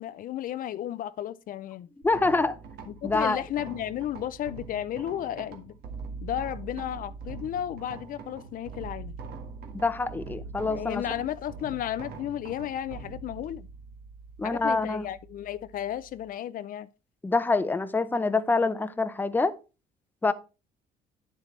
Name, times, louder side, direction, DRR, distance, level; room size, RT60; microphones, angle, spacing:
voice 1, 0.0-1.9 2.9-5.8 6.2-9.1 10.6-13.7 14.4-16.9, left 11 dB, 55° left, 0.5 m, -33 dB
voice 2, 2.0-2.6 3.0-3.4 9.7-11.0 14.4-15.0 17.2-19.5 20.2-20.3, left 3 dB, 10° left, 0.6 m, -25 dB
sound 1, 2.0-16.3, right 4 dB, 70° right, 1.7 m, -43 dB
9.3 x 7.4 x 3.2 m
cardioid pair, 110°, 17 cm